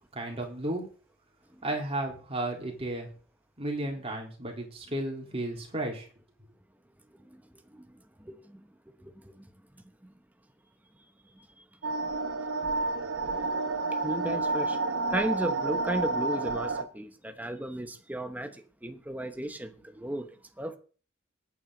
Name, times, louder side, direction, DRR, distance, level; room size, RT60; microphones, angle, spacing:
voice 1, 0.1-0.8 1.6-3.1 3.6-6.1, right 1 dB, 30° right, 3.8 m, -33 dB
sound 1, 11.8-16.8, right 3 dB, 75° right, 1.5 m, -30 dB
voice 2, 14.0-14.8 15.1-18.5 18.8-20.3 20.6-20.8, right 1 dB, 10° right, 1.0 m, -34 dB
20.5 x 9.2 x 4.0 m
head